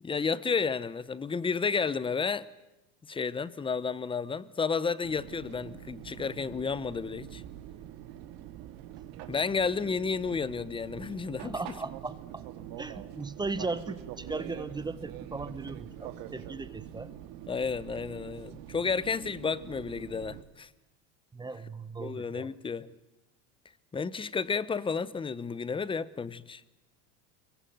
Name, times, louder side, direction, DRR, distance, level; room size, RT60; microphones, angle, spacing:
voice 1, 0.0-2.5 3.1-7.4 9.3-11.5 17.5-20.7 22.0-22.9 23.9-26.6, left 5 dB, 15° left, 0.8 m, -31 dB
Fixed-wing aircraft airplane, 5.0-20.4, right 11 dB, 60° right, 2.4 m, -45 dB
voice 2, 11.4-12.4 12.8-17.1 21.3-22.5, right 3 dB, 10° right, 1.1 m, -37 dB
24.0 x 22.5 x 9.3 m
supercardioid pair, 135°, 38 cm